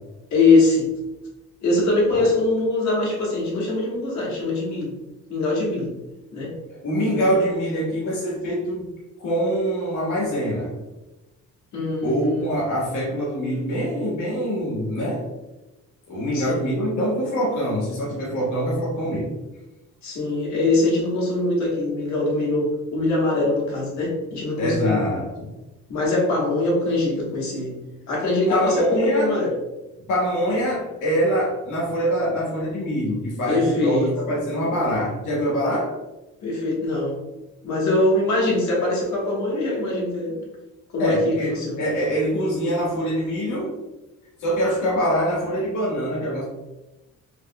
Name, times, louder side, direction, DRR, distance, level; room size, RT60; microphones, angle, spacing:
voice 1, 0.3-0.9 1.6-4.9 5.3-5.9 6.3-6.5 7.0-7.3 11.7-12.5 16.3-16.7 20.0-25.1 25.9-27.7 28.1-29.5 33.5-34.1 36.4-37.1 37.6-40.4 40.9-41.8, left 2 dB, 65° left, -4 dB, 1.4 m, -22 dB
voice 2, 6.8-8.9 9.2-10.8 12.0-15.2 16.1-19.3 24.6-25.5 28.5-29.3 30.1-36.0 41.0-43.7 44.4-46.5, equal, 85° left, -6 dB, 1.3 m, -24 dB
3.6 x 3.3 x 2.2 m, 1.0 s
cardioid pair, 90°, 30 cm